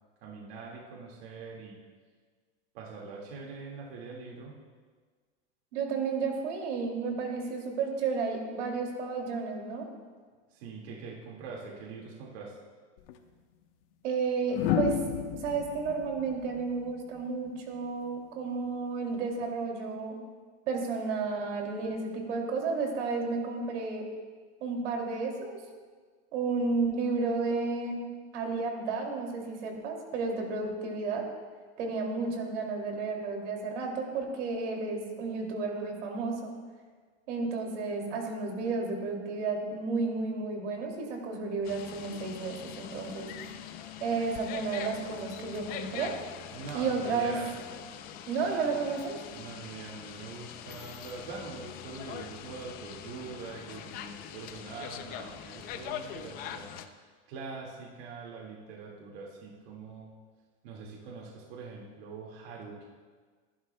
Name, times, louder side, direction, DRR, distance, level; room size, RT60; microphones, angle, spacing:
voice 1, 0.2-1.8 2.7-4.6 10.5-12.6 46.5-47.5 49.3-56.8 57.3-60.1 60.6-62.9, right 4 dB, 60° right, -2 dB, 2.1 m, -43 dB
voice 2, 5.7-9.9 14.0-15.0 15.3-20.2 20.7-24.0 24.6-25.6 26.3-28.0 28.3-31.3 31.8-36.5 37.3-43.3 44.0-46.2 46.7-47.4 48.3-49.2, right 4 dB, 85° right, 1 dB, 2.7 m, -32 dB
sound 1, 13.0-13.2 14.5-17.6 19.1-19.4, left 9 dB, 55° left, 1.1 m, -33 dB
sound 2, 41.6-56.9, left 9 dB, 25° left, 0.5 m, -43 dB
24.0 x 11.0 x 2.2 m, 1.5 s
supercardioid pair, 155°, 35 cm